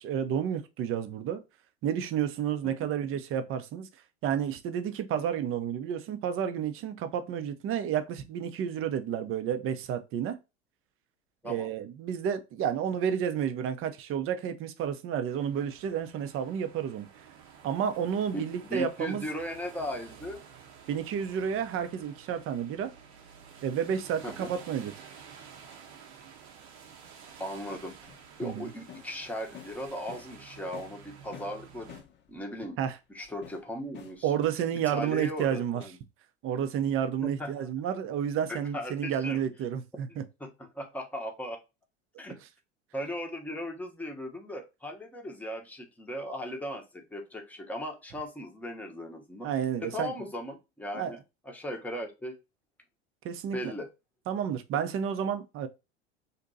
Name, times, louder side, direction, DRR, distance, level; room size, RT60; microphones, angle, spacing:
voice 1, 0.0-1.4 1.8-3.9 4.2-10.4 11.4-17.1 17.6-19.3 20.9-22.9 23.6-24.9 28.4-28.7 32.8-33.0 34.2-35.8 36.4-40.2 49.4-50.1 50.9-51.2 53.2-53.7 54.3-55.7, right 8 dB, 40° right, 0.6 m, -31 dB
sound 1, 15.3-32.0, right 7 dB, 70° right, 0.8 m, -51 dB
voice 2, 18.3-20.4 24.2-24.5 27.4-28.0 28.4-32.0 32.3-32.8 33.1-34.3 34.9-36.0 37.2-37.7 38.5-39.4 40.1-41.6 42.2-42.4 42.9-49.5 49.8-51.2 51.4-52.4 53.5-53.9, left 1 dB, 5° left, 0.8 m, -37 dB
sound 2, 27.7-30.4 30.7-32.4 33.2-35.1 35.4-35.9, left 9 dB, 35° left, 0.6 m, -50 dB
2.6 x 2.2 x 3.8 m
hypercardioid pair, 85°, 34 cm